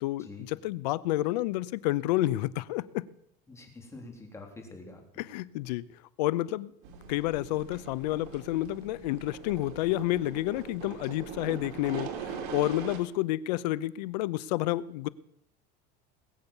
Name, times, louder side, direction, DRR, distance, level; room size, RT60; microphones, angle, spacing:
voice 1, 0.0-3.0 5.2-5.8 6.2-6.7 7.1-15.1, left 16 dB, 85° left, 0.7 m, -30 dB
voice 2, 3.5-5.2, left 3 dB, 15° left, 3.4 m, -46 dB
sound 1, 6.8-13.0, right 6 dB, 70° right, 3.4 m, -41 dB
20.0 x 8.1 x 7.2 m
supercardioid pair, 135°, 20 cm